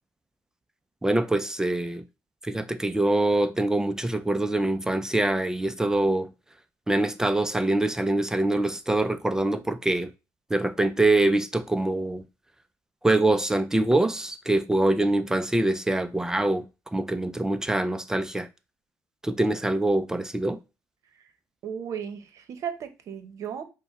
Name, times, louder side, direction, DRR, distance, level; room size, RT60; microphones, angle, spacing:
voice 1, 1.0-2.0 2.4-6.3 6.9-10.1 10.5-12.2 13.0-18.5 19.2-20.6, right 2 dB, 10° right, 0.4 m, -24 dB
voice 2, 21.6-23.6, right 8 dB, 60° right, 0.8 m, -35 dB
5.4 x 2.1 x 4.7 m
cardioid pair, 105°, 6 cm